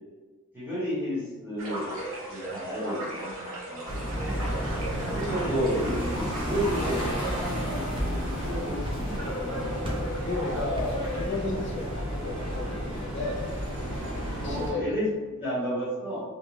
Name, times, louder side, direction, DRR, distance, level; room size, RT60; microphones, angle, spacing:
voice 1, 0.5-2.0 2.3-4.4 5.1-9.6 14.4-16.2, equal, 10° right, -9 dB, 1.0 m, -32 dB
sound 1, 1.6-7.4, right 1 dB, 70° right, 0.7 m, -36 dB
sound 2, 3.9-14.7, equal, 90° right, 1.3 m, -32 dB
voice 2, 4.8-5.1 9.8-13.4 14.4-14.8, left 3 dB, 60° left, -1 dB, 0.4 m, -34 dB
sound 3, 7.9-8.5 8.8-9.4 9.8-10.2 10.8-11.1, equal, 25° right, 0.4 m, -38 dB
2.5 x 2.1 x 3.1 m, 1.3 s
head